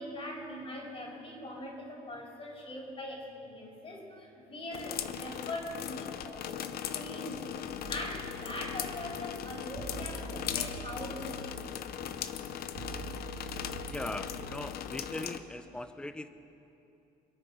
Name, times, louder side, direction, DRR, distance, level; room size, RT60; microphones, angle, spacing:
voice 1, 0.0-6.6 6.9-11.8, left 1 dB, 35° left, -2 dB, 4.6 m, -42 dB
sound 1, 4.7-15.4, left 9 dB, 65° left, 0.8 m, -39 dB
sound 2, 7.8-14.6, right 6 dB, 65° right, 3.0 m, -46 dB
voice 2, 13.9-16.3, left 1 dB, 5° left, 10 dB, 0.7 m, -40 dB
25.5 x 9.4 x 5.7 m, 2.8 s
cardioid pair, 110°, 17 cm